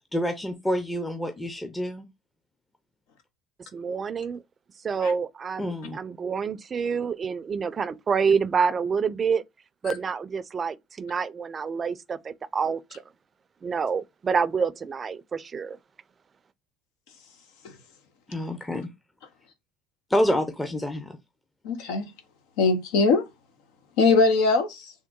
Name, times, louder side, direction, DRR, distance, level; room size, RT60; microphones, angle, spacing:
voice 1, 0.1-2.1 5.6-6.0 18.3-18.9 20.1-21.2, equal, 10° left, 0.6 m, -27 dB
voice 2, 3.7-4.4 4.8-9.4 9.8-13.0 13.6-15.8, right 6 dB, 35° right, 0.4 m, -27 dB
voice 3, 21.6-22.1 22.6-23.2 24.0-24.9, left 4 dB, 80° left, 0.6 m, -21 dB
3.6 x 2.6 x 3.7 m
supercardioid pair, 75°, 0 cm